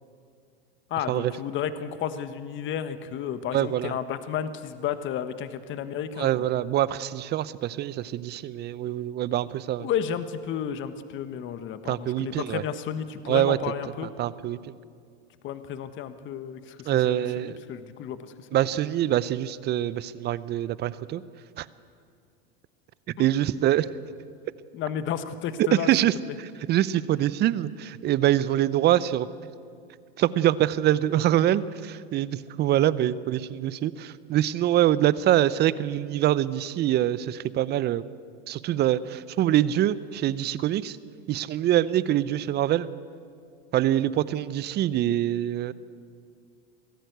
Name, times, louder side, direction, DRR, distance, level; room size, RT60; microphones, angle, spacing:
voice 1, 0.9-6.3 9.8-14.1 15.4-18.5 23.2-23.3 24.7-25.9 26.3-26.4, left 9 dB, 40° left, 11 dB, 1.3 m, -32 dB
voice 2, 3.5-3.9 6.2-9.9 11.8-12.6 13.3-13.6 14.2-14.8 16.9-17.6 18.5-21.2 21.6-21.7 23.2-23.9 25.6-26.1 26.7-29.3 30.2-38.1 38.5-41.0 41.3-42.9 43.7-45.7, right 12 dB, 35° right, 18 dB, 0.7 m, -24 dB
24.0 x 15.5 x 8.1 m, 2.3 s
hypercardioid pair, 110°, 31 cm